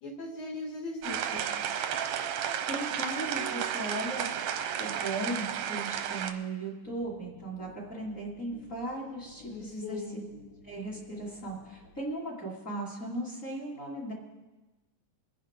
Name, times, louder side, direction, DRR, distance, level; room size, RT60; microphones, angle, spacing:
voice 1, 0.0-1.4 9.5-10.3, left 3 dB, 55° left, -3 dB, 3.0 m, -39 dB
sound 1, 1.0-6.3, right 9 dB, 70° right, 1.8 m, -33 dB
voice 2, 2.7-10.2 10.6-14.1, right 2 dB, 25° left, -5 dB, 2.8 m, -37 dB
sound 2, 6.8-12.0, left 6 dB, 70° left, 3.0 m, -56 dB
23.5 x 10.5 x 3.7 m, 1.2 s
omnidirectional pair, 3.8 m